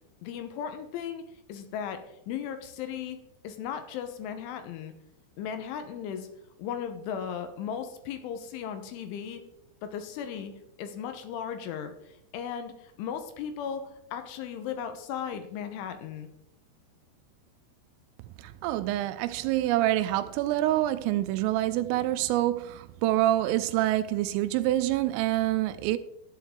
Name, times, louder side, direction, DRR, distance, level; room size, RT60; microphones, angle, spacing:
voice 1, 0.2-1.2 1.5-2.0 2.3-4.9 5.4-6.3 6.6-9.4 9.8-10.5 10.8-16.3, left 8 dB, 75° left, 3.2 m, -36 dB
voice 2, 18.4-26.0, right 14 dB, 85° right, 3.1 m, -26 dB
12.0 x 11.0 x 3.7 m
omnidirectional pair, 6.0 m